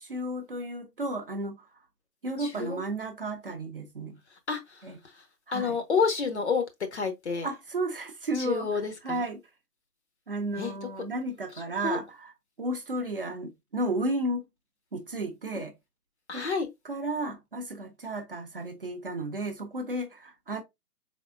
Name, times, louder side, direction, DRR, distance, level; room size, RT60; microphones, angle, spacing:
voice 1, 0.0-1.6 2.2-4.2 4.8-5.0 5.5-5.8 7.4-9.4 10.3-12.3 12.6-14.4 14.9-15.7 16.3-16.4 16.8-20.6, right 1 dB, 35° right, 0.6 m, -33 dB
voice 2, 2.4-2.8 4.5-4.8 5.5-6.6 6.9-7.5 8.4-9.3 10.6-10.8 11.8-12.0 16.3-16.7, left 5 dB, 45° left, 0.9 m, -29 dB
4.6 x 3.6 x 2.4 m
figure-of-eight pair, 135°, 47 cm